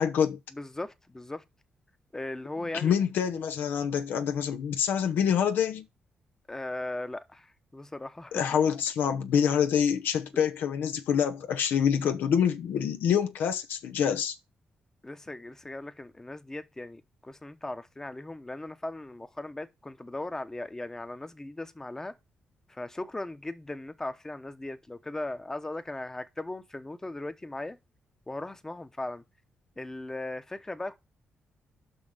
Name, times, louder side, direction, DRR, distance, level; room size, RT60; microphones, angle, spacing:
voice 1, 0.0-0.4 2.7-5.8 8.3-14.4, left 8 dB, 85° left, 0.8 m, -26 dB
voice 2, 0.5-1.4 2.1-3.0 6.5-8.4 10.3-10.4 15.0-22.1 22.7-27.8 28.3-29.2 29.8-30.9, left 2 dB, 15° left, 0.9 m, -38 dB
5.7 x 5.5 x 6.5 m
cardioid pair, 95°, 3 cm